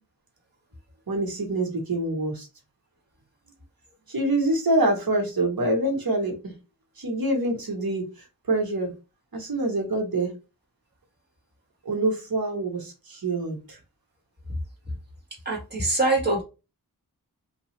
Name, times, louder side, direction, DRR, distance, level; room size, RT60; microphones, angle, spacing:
voice 1, 1.1-2.5 4.1-6.5 7.0-8.0 8.5-8.9 9.3-10.3 11.8-13.8, right 2 dB, 75° right, 2 dB, 1.2 m, -25 dB
voice 2, 15.4-16.4, right 2 dB, 30° right, -2 dB, 1.6 m, -23 dB
2.8 x 2.4 x 3.2 m, 0.28 s
wide cardioid pair, 70°, 36 cm